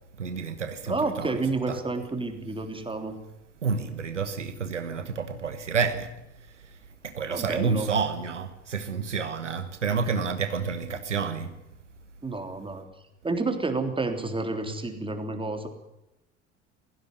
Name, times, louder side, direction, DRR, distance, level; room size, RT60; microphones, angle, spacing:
voice 1, 0.2-1.3 1.7-1.8 3.6-6.1 7.0-11.5, right 5 dB, 90° right, 1.3 m, -29 dB
voice 2, 0.9-3.2 7.3-7.9 12.2-12.9 13.2-15.7, right 3 dB, 15° right, 3.4 m, -30 dB
16.5 x 16.0 x 9.8 m
figure-of-eight pair, 65°, 35 cm